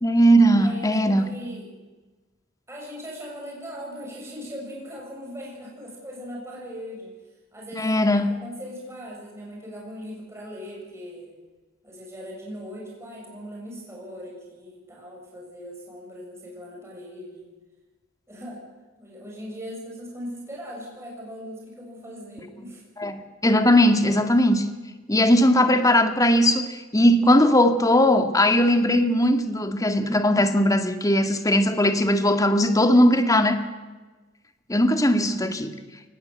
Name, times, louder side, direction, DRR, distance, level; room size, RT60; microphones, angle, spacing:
voice 1, 0.0-1.3 7.8-8.4 23.0-24.6 25.1-33.6 34.7-35.7, equal, 20° left, 7 dB, 2.0 m, -19 dB
voice 2, 0.6-1.7 2.7-7.1 7.5-11.3 11.8-17.6 18.3-18.6 19.0-22.8, equal, 15° right, -3 dB, 7.1 m, -39 dB
23.0 x 20.0 x 8.3 m, 1.2 s
head